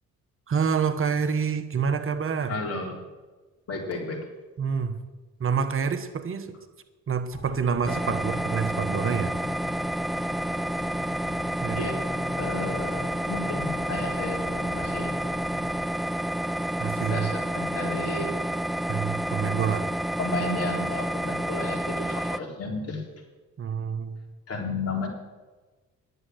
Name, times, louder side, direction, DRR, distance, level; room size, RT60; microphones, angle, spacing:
voice 1, 0.5-2.6 4.6-5.0 5.4-6.6 7.1-9.3 11.6-11.9 16.8-17.3 18.9-19.9 23.6-24.2, right 6 dB, 45° right, 9 dB, 1.1 m, -27 dB
voice 2, 2.5-2.9 3.7-4.3 11.7-12.0 12.3-15.2 17.0-18.3 20.2-23.0 24.5-25.1, left 2 dB, 50° left, 0 dB, 3.6 m, -32 dB
sound 1, 7.3-15.9, left 5 dB, 30° left, 0.7 m, -42 dB
sound 2, 7.9-22.4, right 1 dB, ahead, 0.3 m, -29 dB
11.0 x 10.0 x 7.9 m, 1.2 s
cardioid pair, 90°, 30 cm